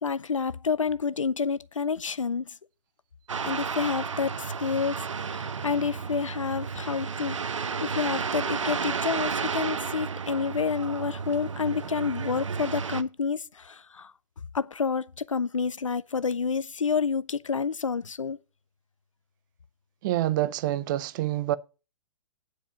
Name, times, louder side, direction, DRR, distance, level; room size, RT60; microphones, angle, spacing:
voice 1, 0.0-2.5 3.4-14.1 14.5-18.4, left 5 dB, 85° left, 0.6 m, -29 dB
sound 1, 3.3-13.0, right 6 dB, 80° right, 0.8 m, -32 dB
voice 2, 20.0-21.6, right 14 dB, 40° right, 0.6 m, -27 dB
9.9 x 4.8 x 6.9 m
figure-of-eight pair, 120°, 16 cm